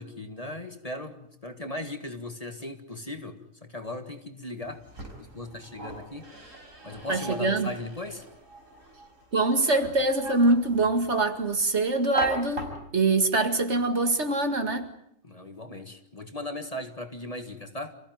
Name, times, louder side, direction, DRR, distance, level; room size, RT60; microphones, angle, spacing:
voice 1, 0.0-4.8 5.2-6.3 6.8-8.2 15.2-17.9, left 1 dB, 25° left, 7 dB, 1.8 m, -38 dB
sound 1, 4.6-13.1, right 2 dB, 70° right, 5.6 m, -40 dB
voice 2, 7.1-7.7 9.3-14.9, right 2 dB, 55° right, 7 dB, 2.4 m, -24 dB
28.0 x 16.0 x 9.3 m, 0.74 s
omnidirectional pair, 1.4 m